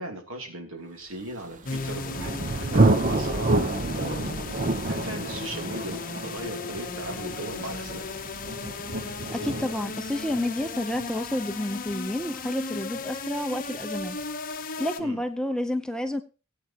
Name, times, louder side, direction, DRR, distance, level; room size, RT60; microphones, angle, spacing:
voice 1, 0.0-2.4 2.7-4.2 4.9-8.0 15.0-15.2, right 1 dB, 65° right, 2.9 m, -37 dB
Thunder, 1.4-13.0, right 2 dB, 35° right, 0.8 m, -29 dB
sound 1, 1.7-15.0, left 4 dB, 40° left, 0.9 m, -36 dB
voice 2, 9.3-14.2 14.5-16.2, left 1 dB, 5° left, 0.7 m, -30 dB
18.5 x 8.6 x 2.9 m
head